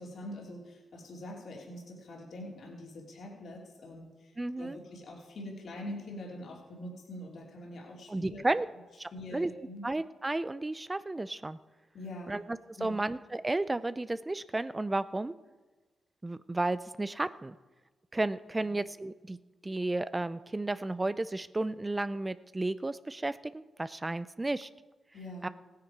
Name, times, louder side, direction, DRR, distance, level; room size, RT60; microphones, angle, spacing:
voice 1, 0.0-8.4 9.1-9.9 11.9-12.4 12.8-13.0 18.6-18.7 25.1-25.5, left 1 dB, 70° left, -2 dB, 2.9 m, -44 dB
voice 2, 4.4-4.8 8.1-8.7 9.0-9.5 9.8-11.6 12.3-15.3 16.2-17.6 18.1-19.4 19.6-24.7 25.4-25.5, right 2 dB, 25° right, 15 dB, 0.5 m, -33 dB
15.5 x 9.6 x 4.7 m, 1.2 s
supercardioid pair, 55°, 0 cm